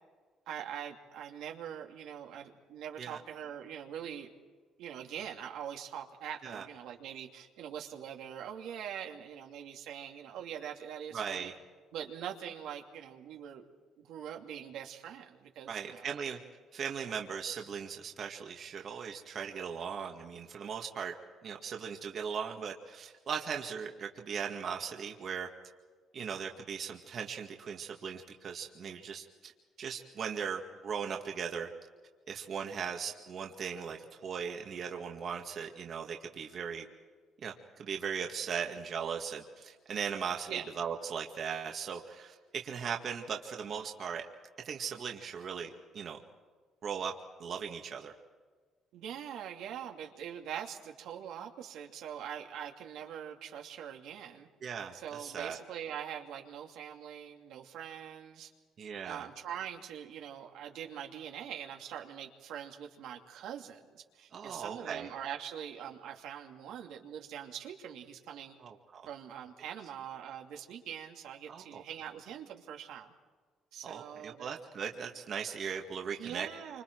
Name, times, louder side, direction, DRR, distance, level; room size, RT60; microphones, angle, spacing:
voice 1, 0.5-4.3 4.8-11.5 11.9-13.7 14.0-16.1 17.0-17.1 40.5-40.7 48.9-54.5 54.9-58.5 59.0-68.6 69.1-73.1 73.7-74.5 76.2-76.8, right 9 dB, 75° right, 2 dB, 2.7 m, -43 dB
voice 2, 11.1-11.5 15.7-16.4 16.7-21.1 21.4-25.5 26.1-29.5 29.8-31.7 32.3-34.0 34.2-36.8 37.4-44.2 44.6-46.2 46.8-47.1 47.4-48.1 54.6-55.6 58.8-59.2 64.3-65.1 68.6-69.1 71.5-71.8 73.8-76.5, right 7 dB, 45° right, 2 dB, 2.0 m, -38 dB
28.5 x 26.0 x 4.7 m, 1.5 s
cardioid pair, 140°, 0 cm